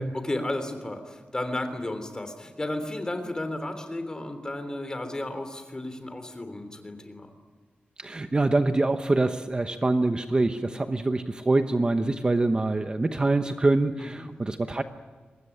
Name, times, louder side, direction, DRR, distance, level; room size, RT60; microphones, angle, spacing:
voice 1, 0.1-7.3 14.0-14.3, left 1 dB, 20° left, 8 dB, 3.3 m, -33 dB
voice 2, 8.0-14.8, right 2 dB, 25° right, 8 dB, 1.0 m, -25 dB
24.0 x 20.5 x 10.0 m, 1.4 s
wide cardioid pair, 155°, 4 cm